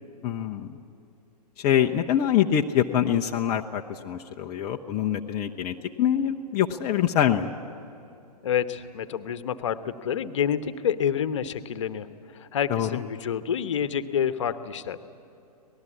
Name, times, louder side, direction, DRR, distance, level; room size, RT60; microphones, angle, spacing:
voice 1, 0.2-0.8 1.6-7.5 12.7-13.0, left 10 dB, 20° left, 2 dB, 0.6 m, -25 dB
voice 2, 8.4-12.1 12.3-15.0, left 8 dB, 45° left, 12 dB, 1.1 m, -28 dB
25.5 x 19.5 x 8.5 m, 2.7 s
figure-of-eight pair, 120°, 21 cm